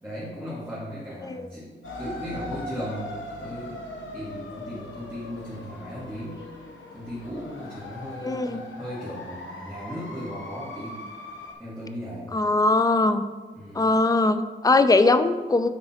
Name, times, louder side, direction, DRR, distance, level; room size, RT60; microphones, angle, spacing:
voice 1, 0.0-3.8 4.1-6.4 6.9-11.0 11.6-12.3 13.5-13.8, equal, 10° right, -9 dB, 1.8 m, -36 dB
sound 1, 1.8-11.5, left 1 dB, 85° left, 1.2 m, -40 dB
voice 2, 8.2-8.6 12.3-13.2 13.7-15.7, left 2 dB, 20° left, 10 dB, 0.4 m, -21 dB
9.6 x 3.8 x 4.3 m, 1.4 s
wide cardioid pair, 140°, 20 cm